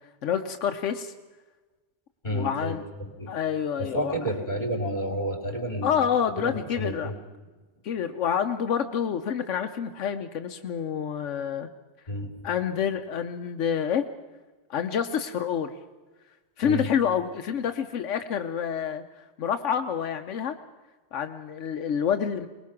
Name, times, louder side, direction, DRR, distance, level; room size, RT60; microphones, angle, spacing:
voice 1, 0.2-1.1 2.3-2.8 3.3-4.1 5.8-7.1 7.8-11.7 12.4-14.1 14.7-15.7 16.6-19.0 19.4-20.5 21.1-22.5, left 8 dB, 85° left, 7 dB, 1.1 m, -28 dB
voice 2, 2.2-3.3 3.8-6.1 6.4-7.2 12.1-12.4 16.6-16.9, equal, 40° left, 4 dB, 3.2 m, -31 dB
22.5 x 20.0 x 5.9 m, 1.2 s
omnidirectional pair, 1.2 m